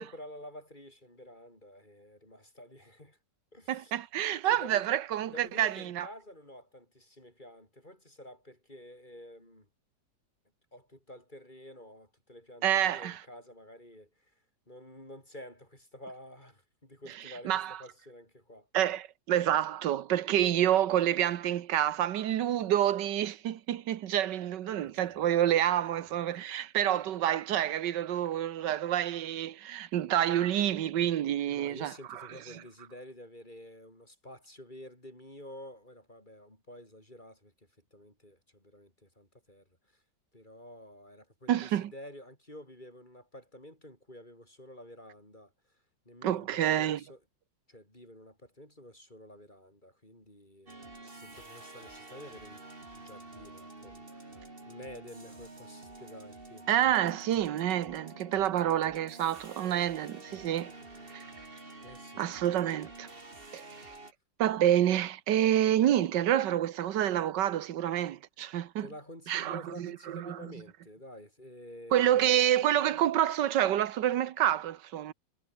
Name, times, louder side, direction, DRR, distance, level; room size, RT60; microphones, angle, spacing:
voice 1, 0.0-3.2 3.5-4.0 4.4-4.9 5.3-9.7 10.7-14.3 14.7-18.7 24.7-25.5 25.9-26.5 31.5-40.0 40.3-45.8 46.0-47.2 47.7-52.6 52.9-56.7 61.8-62.5 68.8-72.4, left 1 dB, 25° left, 6.6 m, -50 dB
voice 2, 3.7-6.1 12.6-13.2 17.4-17.8 18.7-32.3 41.5-41.9 46.2-47.0 56.7-60.7 61.1-61.2 62.2-63.1 63.5-63.6 64.4-68.9 69.3-70.4 71.9-75.1, right 11 dB, 75° right, 1.6 m, -28 dB
sound 1, 50.7-64.1, right 2 dB, 30° right, 3.5 m, -49 dB
omnidirectional pair, 1.9 m